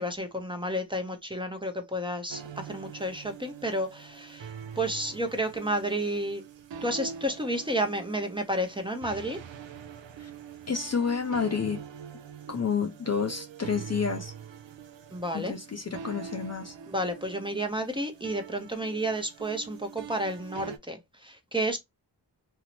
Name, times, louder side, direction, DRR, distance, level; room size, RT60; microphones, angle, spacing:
voice 1, 0.0-6.4 6.8-9.4 15.1-15.5 16.9-21.8, right 1 dB, 10° right, 0.7 m, -31 dB
sound 1, 2.3-20.8, right 7 dB, 80° right, 0.5 m, -44 dB
voice 2, 10.7-11.8 12.5-14.3 15.3-16.7, left 6 dB, 35° left, 0.5 m, -29 dB
2.6 x 2.0 x 2.9 m
cardioid pair, 45°, 44 cm